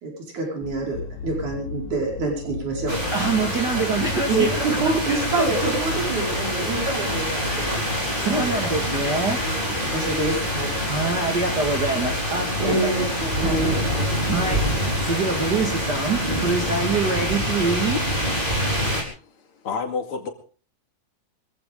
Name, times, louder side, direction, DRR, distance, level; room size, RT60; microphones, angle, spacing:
voice 1, 0.0-3.0 4.3-7.8 8.3-8.5 9.6-10.7 12.6-14.1 14.4-14.6, right 3 dB, 65° right, 0 dB, 6.4 m, -26 dB
sound 1, 0.6-15.2, left 4 dB, 70° left, 2.4 m, -35 dB
sound 2, 2.9-19.0, equal, 15° right, 4.6 m, -26 dB
voice 2, 3.1-4.7 5.1-5.5 8.2-9.4 10.9-12.9 13.4-13.5 14.2-14.7 15.0-18.1, right 3 dB, 35° right, 2 dB, 2.1 m, -25 dB
voice 3, 18.9-20.3, left 5 dB, 45° left, 5 dB, 3.0 m, -31 dB
24.5 x 15.5 x 3.7 m, 0.40 s
omnidirectional pair, 3.6 m